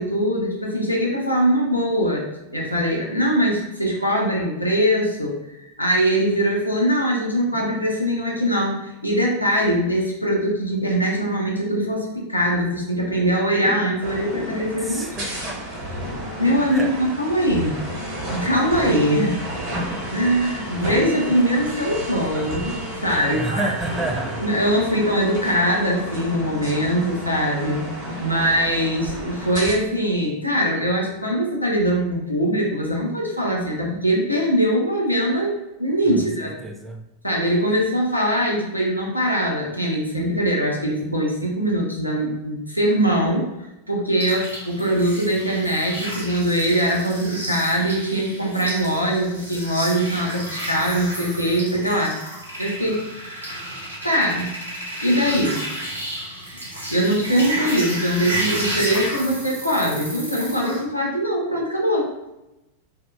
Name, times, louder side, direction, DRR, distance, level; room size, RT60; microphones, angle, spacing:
voice 1, 0.0-5.4 5.8-8.7 9.0-15.1 16.4-17.8 18.3-19.4 20.1-23.7 24.4-35.5 35.8-36.5 37.2-53.1 54.0-54.5 55.0-55.6 56.9-62.1, equal, 90° left, -2 dB, 0.5 m, -22 dB
sound 1, 7.0-16.8, left 1 dB, 35° left, 0.6 m, -42 dB
sound 2, 14.0-29.7, equal, 50° right, 1.0 m, -32 dB
voice 2, 14.8-15.9 16.7-16.9 23.3-24.4 36.1-37.0, right 2 dB, 10° right, 3 dB, 0.3 m, -30 dB
sound 3, 44.2-60.8, right 1 dB, 85° right, 0.7 m, -31 dB
2.6 x 2.1 x 2.3 m, 0.94 s
figure-of-eight pair, 90°, 0 cm